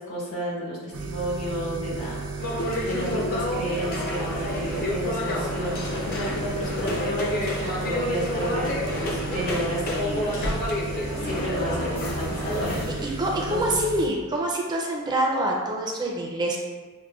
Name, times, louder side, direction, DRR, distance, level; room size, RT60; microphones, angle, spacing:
voice 1, 0.0-10.7 11.2-13.8, equal, 75° left, -6 dB, 1.4 m, -32 dB
sound 1, 0.9-14.1, right 4 dB, 80° right, 0.4 m, -34 dB
sound 2, 2.4-12.9, left 1 dB, 40° left, 0.5 m, -30 dB
sound 3, 5.5-11.3, equal, 60° left, 1.1 m, -40 dB
voice 2, 13.2-16.6, right 1 dB, 20° right, -1 dB, 0.4 m, -26 dB
6.1 x 2.1 x 2.3 m, 1.4 s
head